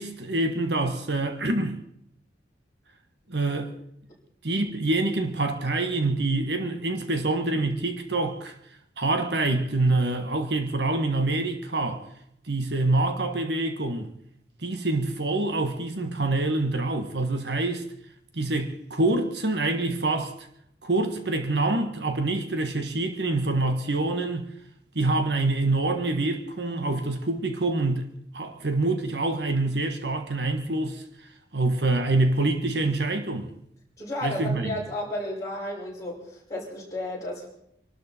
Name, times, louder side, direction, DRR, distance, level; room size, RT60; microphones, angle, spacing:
voice 1, 0.0-1.8 3.3-3.8 4.4-8.5 9.0-12.0 12.5-14.1 14.6-17.9 18.3-20.5 20.8-24.5 24.9-28.1 28.3-31.0 31.5-33.5 34.2-34.8, right 2 dB, 70° right, 1.6 m, -26 dB
voice 2, 34.0-37.5, left 1 dB, 15° left, 5.8 m, -33 dB
26.0 x 12.5 x 4.4 m
head